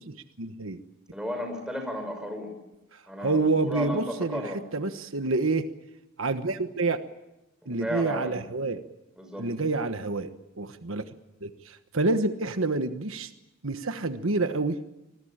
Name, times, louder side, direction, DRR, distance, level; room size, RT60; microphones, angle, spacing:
voice 1, 0.1-0.8 2.9-5.7 6.2-7.0 7.7-8.8 9.4-10.3 10.6-11.1 11.4-13.3 13.6-14.8, right 3 dB, 75° right, 9 dB, 1.3 m, -28 dB
voice 2, 1.1-2.5 3.1-4.6 7.6-8.3 9.2-9.5, equal, 5° right, 4 dB, 5.7 m, -34 dB
26.0 x 20.0 x 8.9 m, 0.94 s
head